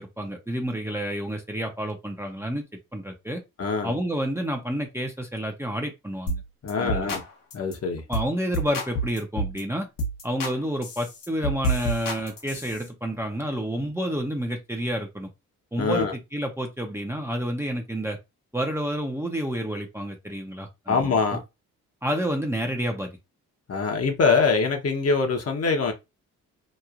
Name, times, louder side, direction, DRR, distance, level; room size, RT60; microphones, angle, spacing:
voice 1, 0.0-2.6 2.9-3.4 3.8-6.4 6.8-7.2 8.1-9.9 10.2-15.3 15.7-18.2 18.5-21.4 22.0-23.1, equal, 10° right, 0.6 m, -29 dB
voice 2, 3.6-3.9 6.6-7.2 7.5-8.0 15.8-16.1 20.9-21.4 23.7-25.9, left 4 dB, 45° left, 0.9 m, -23 dB
sound 1, 6.3-6.4 6.7-7.2 7.5-7.7 8.1-8.3 8.5-9.6 10.0-10.5 10.8-12.8, right 1 dB, 70° left, 1.0 m, -29 dB
3.0 x 2.4 x 2.4 m
supercardioid pair, 70°, 34 cm